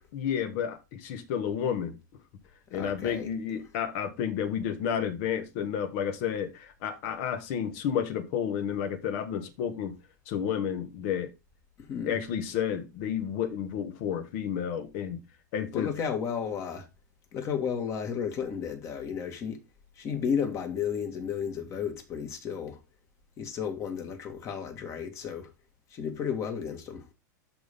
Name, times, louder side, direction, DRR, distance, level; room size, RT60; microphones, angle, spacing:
voice 1, 0.1-2.0 2.7-9.9 10.3-11.3 12.0-15.2 15.5-15.9, left 8 dB, 50° left, 1.7 m, -31 dB
voice 2, 2.7-3.3 11.8-12.2 15.7-16.9 17.3-19.6 20.0-22.8 23.4-25.5 25.9-27.1, left 7 dB, 30° left, 2.0 m, -33 dB
12.5 x 4.3 x 3.7 m
supercardioid pair, 140°, 10 cm